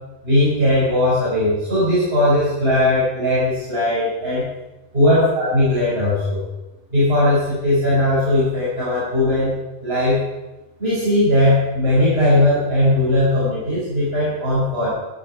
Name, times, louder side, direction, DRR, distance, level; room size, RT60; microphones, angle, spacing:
voice 1, 0.2-4.5 4.9-6.4 6.9-9.5 9.8-10.2 10.8-14.9, left 1 dB, 55° right, -11 dB, 6.1 m, -18 dB
12.5 x 11.5 x 4.7 m, 1.0 s
omnidirectional pair, 1.2 m